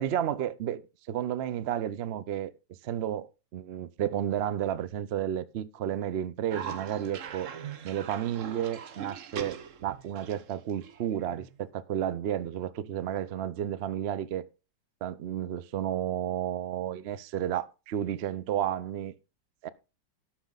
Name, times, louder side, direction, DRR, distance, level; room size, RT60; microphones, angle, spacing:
voice 1, 0.0-2.5 2.8-7.5 7.8-14.4 15.0-19.1 19.6-19.7, right 10 dB, 85° right, 0.5 m, -32 dB
Cough, 6.5-11.6, right 7 dB, 55° right, 1.0 m, -41 dB
17.5 x 6.1 x 3.9 m
omnidirectional pair, 2.0 m